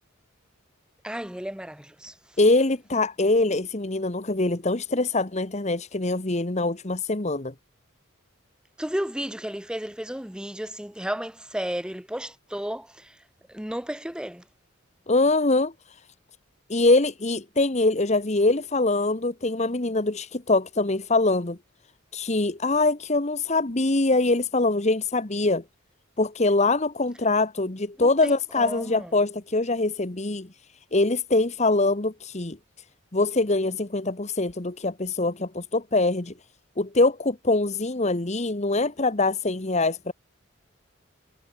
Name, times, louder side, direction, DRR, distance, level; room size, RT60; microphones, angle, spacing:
voice 1, 1.0-2.2 8.8-13.2 13.5-14.4 28.0-29.1, equal, 5° right, 0.8 m, -33 dB
voice 2, 2.4-7.5 15.1-16.0 16.7-21.6 22.1-25.6 26.2-30.5 30.9-32.6 33.1-36.3 36.8-40.1, left 2 dB, 35° left, 1.3 m, -23 dB
head